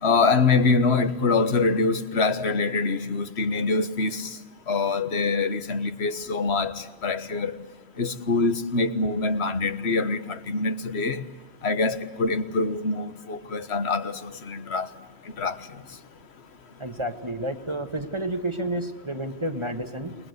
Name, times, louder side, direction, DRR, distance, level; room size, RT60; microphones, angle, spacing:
voice 1, 0.0-4.4 4.7-7.5 8.0-11.2 11.6-14.9 15.4-15.6, left 3 dB, 80° left, 1.5 m, -24 dB
voice 2, 16.8-20.2, right 1 dB, 25° right, 1.5 m, -30 dB
29.5 x 21.5 x 8.0 m
omnidirectional pair, 1.1 m